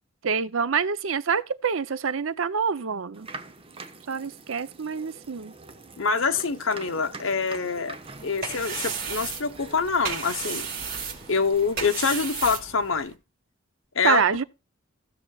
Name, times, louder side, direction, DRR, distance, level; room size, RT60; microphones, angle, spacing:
voice 1, 0.2-3.3 4.1-5.5 14.0-14.4, right 6 dB, 80° right, 0.6 m, -26 dB
sound 1, 3.1-11.7, right 3 dB, 25° right, 1.0 m, -44 dB
voice 2, 6.0-8.0 8.2-10.7 11.3-13.1 13.9-14.2, left 5 dB, 75° left, 1.0 m, -25 dB
sound 2, 8.0-13.1, right 6 dB, 45° right, 2.9 m, -34 dB
16.0 x 6.7 x 2.3 m
head